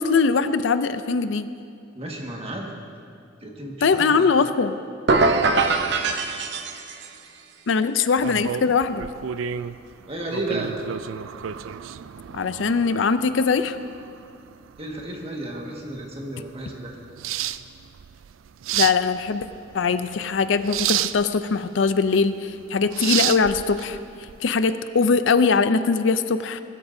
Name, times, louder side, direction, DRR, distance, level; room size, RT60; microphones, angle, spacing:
voice 1, 0.0-1.5 3.8-4.7 7.7-9.0 12.3-13.8 18.7-19.5 19.7-24.0 24.4-26.6, left 5 dB, 70° left, 11 dB, 0.5 m, -21 dB
voice 2, 1.9-2.7 3.4-4.3 10.1-10.7 14.8-16.9, right 1 dB, 30° right, 0 dB, 1.7 m, -32 dB
sound 1, 5.1-7.2, right 3 dB, 60° right, 0.8 m, -22 dB
sound 2, 8.2-24.4, right 11 dB, 85° right, 0.4 m, -31 dB
20.5 x 13.0 x 2.7 m, 2.3 s
head